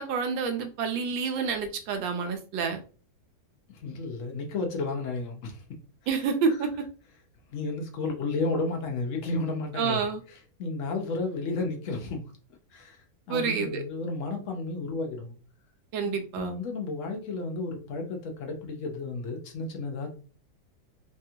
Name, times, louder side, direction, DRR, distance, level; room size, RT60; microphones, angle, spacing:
voice 1, 0.0-2.8 6.1-6.7 9.8-10.2 13.3-13.8 15.9-16.5, right 5 dB, 90° right, 6 dB, 1.4 m, -28 dB
voice 2, 3.7-5.6 7.5-10.0 10.6-12.2 12.7-13.0 13.3-15.3 16.0-20.1, left 3 dB, 60° left, 2 dB, 0.8 m, -32 dB
3.4 x 2.3 x 2.7 m, 0.37 s
omnidirectional pair, 2.0 m